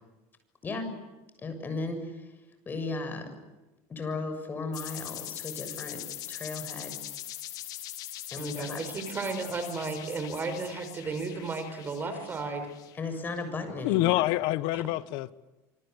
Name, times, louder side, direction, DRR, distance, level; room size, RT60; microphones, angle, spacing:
voice 1, 1.4-2.3 2.7-3.3 3.9-7.0 8.3-8.8 12.9-14.3, left 3 dB, 25° left, 7.0 m, -36 dB
sound 1, 4.7-13.3, left 13 dB, 50° left, 3.0 m, -42 dB
voice 2, 8.3-12.7, right 4 dB, 25° right, 5.2 m, -34 dB
voice 3, 13.8-15.3, left 17 dB, 65° left, 1.2 m, -26 dB
27.0 x 25.0 x 8.1 m
supercardioid pair, 135°, 8 cm